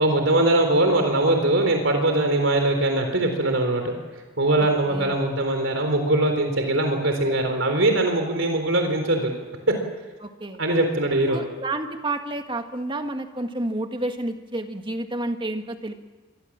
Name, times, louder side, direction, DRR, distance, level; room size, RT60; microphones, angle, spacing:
voice 1, 0.0-4.0 4.4-9.3 10.6-11.4, right 2 dB, 70° right, 5 dB, 3.8 m, -21 dB
voice 2, 4.6-5.2 10.2-10.6 11.3-15.9, right 2 dB, 25° right, 6 dB, 1.8 m, -30 dB
26.0 x 21.0 x 7.4 m, 1.3 s
head